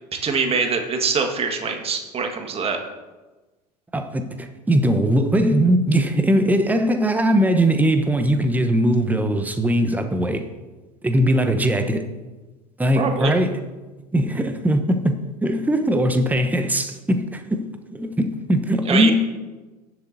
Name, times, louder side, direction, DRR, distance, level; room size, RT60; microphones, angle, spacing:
voice 1, 0.2-2.8 12.9-13.3 18.9-19.1, right 5 dB, 30° right, 4 dB, 1.7 m, -23 dB
voice 2, 3.9-10.5 11.0-12.0 12.8-13.5 14.1-15.1 15.4-19.1, right 1 dB, 10° right, 7 dB, 1.0 m, -20 dB
18.0 x 7.6 x 2.7 m, 1.2 s
figure-of-eight pair, 75°, 21 cm